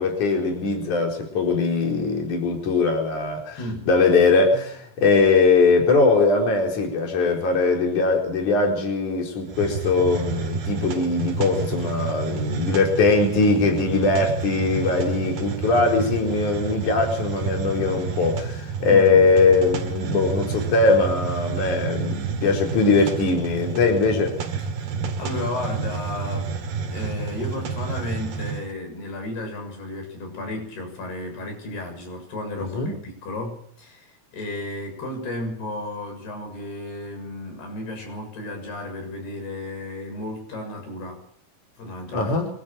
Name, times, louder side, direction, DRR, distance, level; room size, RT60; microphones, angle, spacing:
voice 1, 0.0-3.6 3.9-24.3 32.6-32.9 42.1-42.5, left 3 dB, 50° left, 2 dB, 5.7 m, -21 dB
voice 2, 3.6-3.9 18.9-19.3 24.6-24.7 25.2-26.5 26.9-41.2 41.8-42.4, left 2 dB, 80° left, 4 dB, 9.0 m, -33 dB
Hiss, 9.5-28.7, right 5 dB, 80° right, 4.2 m, -30 dB
24.5 x 13.5 x 9.0 m, 0.63 s
omnidirectional pair, 4.5 m